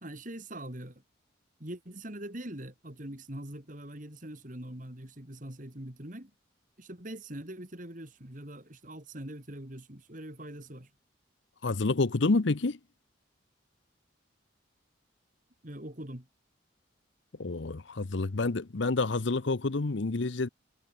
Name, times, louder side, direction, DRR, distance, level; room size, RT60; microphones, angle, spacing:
voice 1, 0.0-1.0 1.6-6.3 6.8-10.9 15.6-16.3, right 1 dB, 40° right, 3.2 m, -43 dB
voice 2, 11.6-12.8 17.4-20.5, left 3 dB, 70° left, 0.8 m, -28 dB
head